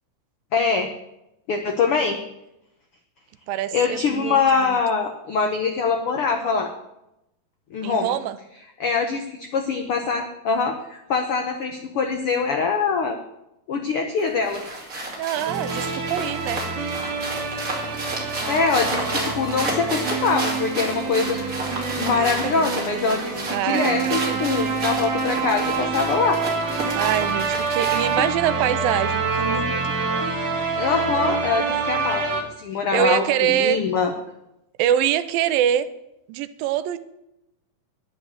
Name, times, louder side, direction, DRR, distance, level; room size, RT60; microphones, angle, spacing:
voice 1, 0.5-0.9 1.5-2.2 3.7-6.7 7.7-8.1 8.8-13.2 13.7-14.6 18.5-21.6 22.0-26.4 27.8-28.3 30.8-34.1, left 5 dB, 90° left, 5 dB, 1.2 m, -23 dB
voice 2, 3.5-4.8 7.8-8.4 15.2-16.6 22.1-22.7 23.5-24.5 26.9-29.9 32.9-33.8 34.8-35.9 36.3-37.0, right 11 dB, 85° right, 13 dB, 2.5 m, -24 dB
sound 1, 14.2-28.3, right 2 dB, 25° right, 2.7 m, -32 dB
sound 2, 15.5-32.4, right 4 dB, 55° right, 3.0 m, -27 dB
10.5 x 10.0 x 7.1 m, 0.87 s
omnidirectional pair, 4.0 m